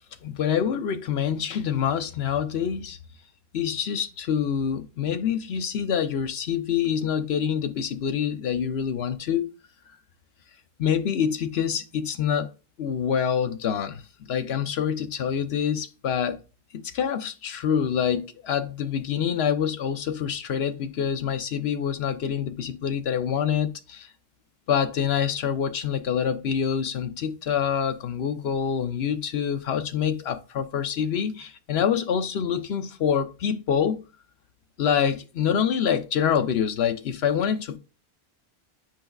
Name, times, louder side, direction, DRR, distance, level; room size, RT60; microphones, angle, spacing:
voice 1, 0.2-3.0 3.5-9.6 10.8-12.5 12.8-16.4 16.7-24.1 24.7-34.0 34.8-37.8, left 8 dB, 75° left, 1.0 m, -26 dB
10.5 x 4.6 x 2.3 m
omnidirectional pair, 1.1 m